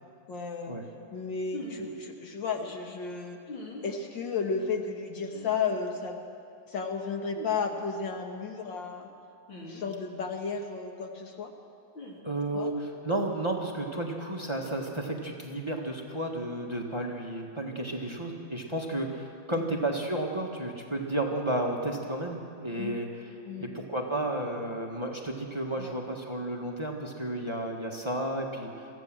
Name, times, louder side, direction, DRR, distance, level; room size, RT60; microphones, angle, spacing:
voice 1, 0.3-0.7 1.1-3.4 3.8-6.2 6.7-9.1 9.6-11.5 12.5-12.7 19.6-19.7 22.8-23.0 23.4-23.7 25.8-25.9, left 5 dB, 70° left, 3 dB, 2.3 m, -33 dB
sound 1, 1.5-1.8 3.5-3.9 5.3-5.6 7.3-7.6 9.5-9.8 11.9-12.2, left 2 dB, 85° left, 3.6 m, -41 dB
voice 2, 12.2-23.3 23.6-28.9, right 1 dB, 15° right, 1 dB, 1.6 m, -32 dB
23.0 x 15.0 x 7.7 m, 2.4 s
omnidirectional pair, 2.1 m